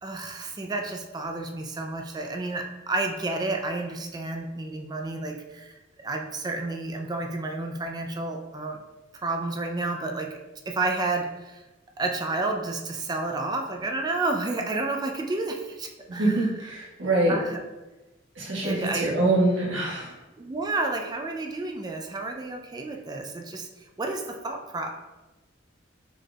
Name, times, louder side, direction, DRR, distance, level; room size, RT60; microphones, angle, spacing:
voice 1, 0.0-8.8 9.2-10.4 10.7-11.6 12.0-16.9 17.3-17.6 18.6-19.1 20.4-23.7 24.0-24.9, right 2 dB, 20° right, 3 dB, 0.4 m, -31 dB
voice 2, 16.1-17.3 18.4-20.1, right 2 dB, 85° right, -4 dB, 1.4 m, -24 dB
5.0 x 4.3 x 2.3 m, 1.1 s
head